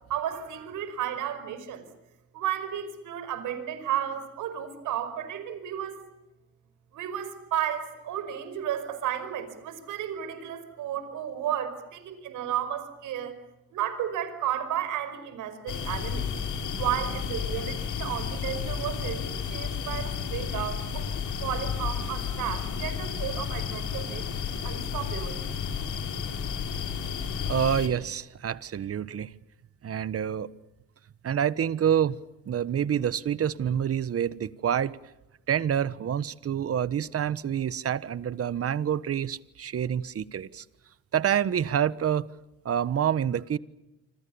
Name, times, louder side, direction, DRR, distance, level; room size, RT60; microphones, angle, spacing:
voice 1, 0.1-1.9 2.3-6.0 6.9-13.4 13.7-16.3 16.8-21.0 21.4-25.4, right 10 dB, 85° right, 5.2 m, -33 dB
sound 1, 15.7-27.9, left 6 dB, 75° left, 4.1 m, -32 dB
voice 2, 27.5-29.3 29.8-30.5 31.2-32.2 32.5-35.0 35.5-40.6 41.1-42.3 42.6-43.6, right 9 dB, 50° right, 1.4 m, -27 dB
29.0 x 26.0 x 7.1 m
cardioid pair, 90°, 30 cm